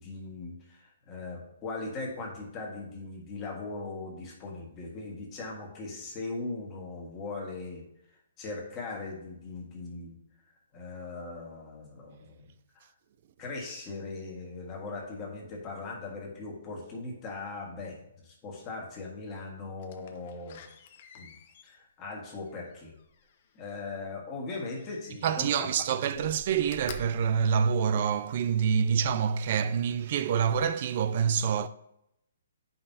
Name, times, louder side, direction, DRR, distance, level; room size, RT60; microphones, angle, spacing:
voice 1, 0.0-7.8 8.4-10.2 10.7-12.9 13.4-20.7 21.1-21.3 21.6-22.9 23.5-25.7 26.1-26.2, left 3 dB, 20° left, 1.6 m, -39 dB
Slam, 19.8-23.7 24.8-25.7 26.1-28.4 28.9-29.0, left 4 dB, 40° left, 0.6 m, -49 dB
voice 2, 25.2-31.7, right 7 dB, 45° right, 0.4 m, -26 dB
8.7 x 5.5 x 2.8 m
hypercardioid pair, 160°, 0 cm